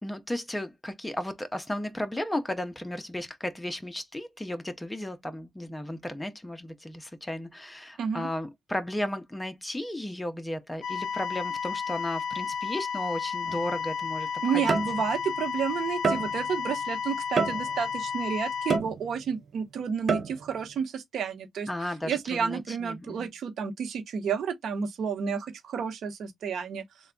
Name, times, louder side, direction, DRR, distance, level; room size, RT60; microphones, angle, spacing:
voice 1, 0.0-14.3 14.5-14.8 21.7-23.3, left 1 dB, 10° left, 0.6 m, -34 dB
sound 1, 10.8-18.8, left 6 dB, 80° left, 0.3 m, -32 dB
sound 2, 13.5-13.7 14.7-15.3 16.0-16.6 17.4-18.0 18.7-19.4 20.1-20.6, right 4 dB, 35° right, 0.6 m, -29 dB
voice 2, 14.4-26.8, right 6 dB, 65° right, 0.8 m, -31 dB
3.3 x 2.2 x 3.7 m
cardioid pair, 150°, 0 cm